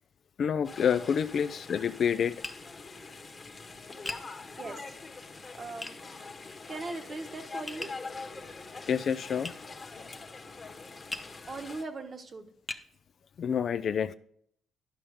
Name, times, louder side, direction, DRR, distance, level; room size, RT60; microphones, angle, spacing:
voice 1, 0.4-2.4 8.9-9.5 13.4-14.1, left 7 dB, 55° left, 13 dB, 0.4 m, -28 dB
sound 1, 0.6-11.8, left 3 dB, 30° left, 1.3 m, -44 dB
Tap, 2.4-2.6 4.1-4.3 5.8-6.0 7.7-8.0 9.4-9.6 11.1-11.3 12.0-12.1 12.7-12.9, left 2 dB, 15° left, 0.9 m, -38 dB
voice 2, 5.6-5.9 6.7-7.9 11.5-12.5, right 3 dB, 40° right, 6 dB, 1.2 m, -39 dB
11.5 x 5.7 x 5.1 m, 0.65 s
cardioid pair, 90°, 0 cm